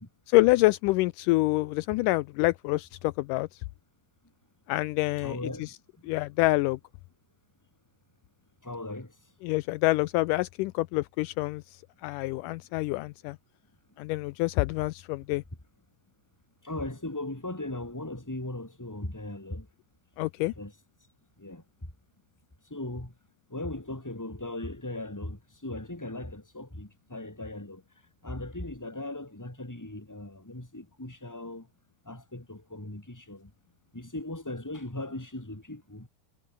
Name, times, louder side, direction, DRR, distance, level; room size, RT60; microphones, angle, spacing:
voice 1, 0.3-3.5 4.7-5.7 6.0-6.8 9.4-13.4 14.0-15.4 20.2-20.5, left 20 dB, 90° left, 1.8 m, -26 dB
voice 2, 5.2-5.7 8.6-9.1 16.6-19.7 20.5-20.7 21.4-21.6 22.7-23.1 23.5-27.8 28.2-31.7 32.0-33.5 33.9-36.1, left 2 dB, 5° left, 3.1 m, -38 dB
omnidirectional pair, 4.3 m